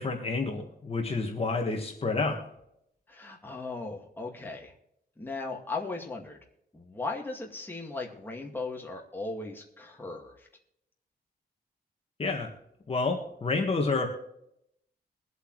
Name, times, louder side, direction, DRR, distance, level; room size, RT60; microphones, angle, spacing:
voice 1, 0.0-2.4 12.2-12.5 12.9-14.1, left 3 dB, 35° left, 2 dB, 1.7 m, -29 dB
voice 2, 3.1-4.7 5.2-6.4 6.7-10.5, left 3 dB, 10° left, 0 dB, 2.1 m, -37 dB
22.5 x 8.2 x 3.2 m, 0.77 s
wide cardioid pair, 150°, 18 cm